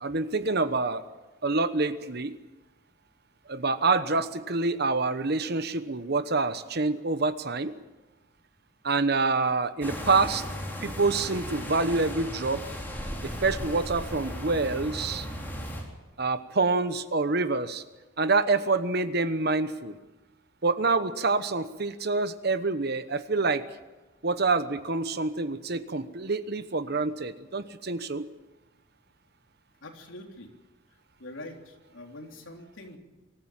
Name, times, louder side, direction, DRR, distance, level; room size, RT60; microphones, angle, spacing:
voice 1, 0.0-1.0 1.4-2.4 3.5-7.8 8.8-10.4 10.8-12.6 13.2-15.3 16.2-17.8 18.2-20.0 20.6-23.6 24.2-28.3, right 3 dB, 55° right, 12 dB, 1.1 m, -27 dB
sound 1, 9.8-15.8, equal, 10° left, 3.8 m, -36 dB
voice 2, 29.8-30.5 31.2-33.0, left 1 dB, 75° left, 2 dB, 3.6 m, -44 dB
24.0 x 14.5 x 8.9 m, 1.2 s
head